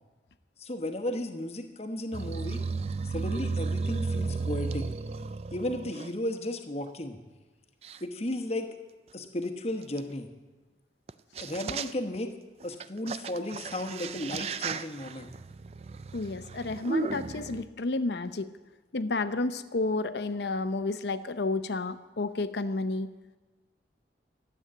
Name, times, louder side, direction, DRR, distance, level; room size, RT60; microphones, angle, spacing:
voice 1, 0.6-2.6 3.0-4.9 5.5-7.2 8.0-8.7 9.1-10.3 11.4-12.3 12.6-15.3, left 1 dB, 35° left, 5 dB, 1.1 m, -34 dB
sound 1, 2.1-6.1 6.9-7.0 7.8-8.0 10.0-10.1 11.1-11.2 11.4-12.2 12.6-17.6, right 4 dB, 35° right, 0.3 m, -34 dB
voice 2, 16.1-18.5 18.9-23.1, left 3 dB, 70° left, 11 dB, 0.7 m, -31 dB
13.0 x 8.1 x 8.6 m, 1.3 s
head